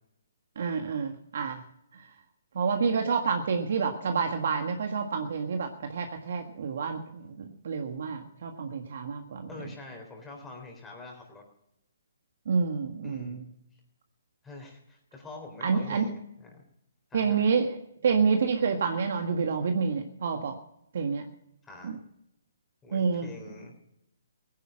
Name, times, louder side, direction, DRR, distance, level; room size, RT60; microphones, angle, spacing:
voice 1, 0.6-1.6 1.9-2.1 2.6-9.5 12.5-13.5 15.6-16.1 17.1-17.8 18.0-20.6 20.9-21.3 21.8-22.0 22.9-23.3, right 5 dB, 60° right, 5 dB, 1.6 m, -28 dB
voice 2, 9.5-11.4 13.0-13.4 14.4-16.6 17.1-17.5 21.6-22.0 22.8-23.7, left 3 dB, 10° left, 1 dB, 3.7 m, -45 dB
17.0 x 10.5 x 6.3 m, 0.81 s
hypercardioid pair, 150°, 0 cm